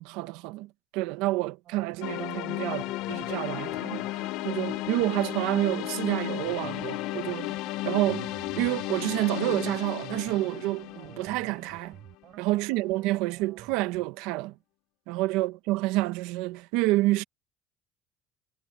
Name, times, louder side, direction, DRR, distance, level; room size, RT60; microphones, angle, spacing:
voice 1, 0.0-7.6 7.8-12.0 12.4-14.5 15.1-17.2, right 19 dB, 90° right, 1.0 m, -29 dB
sound 1, 1.6-14.1, right 13 dB, 60° right, 3.9 m, -50 dB
sound 2, 2.0-12.0, left 18 dB, 75° left, 0.6 m, -34 dB
cardioid pair, 135°, 0 cm